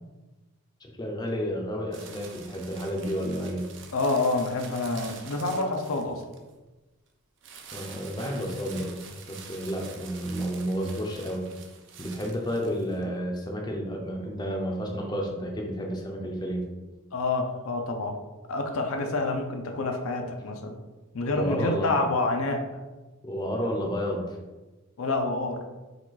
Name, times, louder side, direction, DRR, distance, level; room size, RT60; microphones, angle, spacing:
voice 1, 0.8-3.7 7.7-9.0 9.2-11.5 12.0-16.7 21.3-21.9 23.2-24.4, equal, 20° left, 0 dB, 0.5 m, -31 dB
sound 1, 1.9-6.5 7.4-13.0, right 6 dB, 55° right, 0.5 m, -46 dB
voice 2, 3.9-6.2 17.1-18.2 18.5-20.8 21.1-22.6 25.0-25.6, left 2 dB, 75° left, 4 dB, 0.5 m, -27 dB
4.9 x 2.4 x 3.9 m, 1.2 s
head